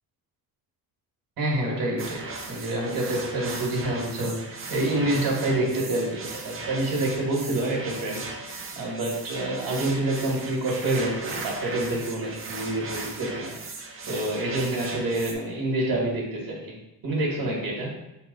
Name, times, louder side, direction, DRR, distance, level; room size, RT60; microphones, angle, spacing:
voice 1, 1.4-2.2 2.5-13.5 14.1-16.8 17.0-17.9, right 1 dB, 70° right, -3 dB, 1.5 m, -27 dB
sound 1, 2.0-15.3, right 3 dB, 35° right, 0.8 m, -37 dB
4.5 x 3.0 x 3.9 m, 0.95 s
cardioid pair, 100°, 37 cm